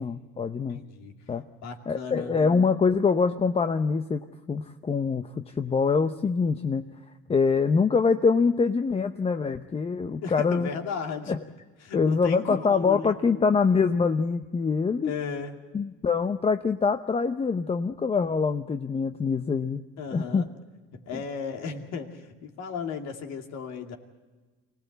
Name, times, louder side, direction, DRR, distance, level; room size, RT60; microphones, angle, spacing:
voice 1, 0.0-0.8 1.3-1.4 1.9-6.9 7.3-10.7 11.3-11.4 11.9-15.1 15.7-19.8 20.1-20.4, left 5 dB, 20° left, 8 dB, 0.7 m, -24 dB
voice 2, 0.7-1.1 1.6-2.4 10.2-11.3 11.8-13.1 15.0-15.6 20.0-20.5 20.9-24.0, left 6 dB, 60° left, 3 dB, 2.5 m, -35 dB
24.5 x 17.5 x 8.0 m, 1.3 s
supercardioid pair, 100°, 30 cm